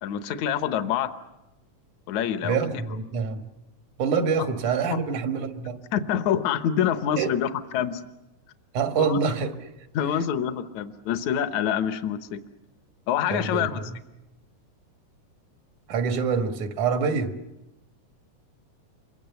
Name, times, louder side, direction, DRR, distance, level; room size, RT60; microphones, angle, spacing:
voice 1, 0.0-1.1 2.1-2.6 4.9-5.0 5.9-8.0 9.0-9.2 9.9-12.4 13.1-13.8, left 9 dB, 75° left, 10 dB, 2.4 m, -26 dB
voice 2, 2.4-3.4 4.0-5.8 7.2-7.4 8.7-9.5 13.3-14.0 15.9-17.3, right 5 dB, 90° right, 6 dB, 3.2 m, -26 dB
28.5 x 24.0 x 6.9 m, 0.95 s
omnidirectional pair, 3.3 m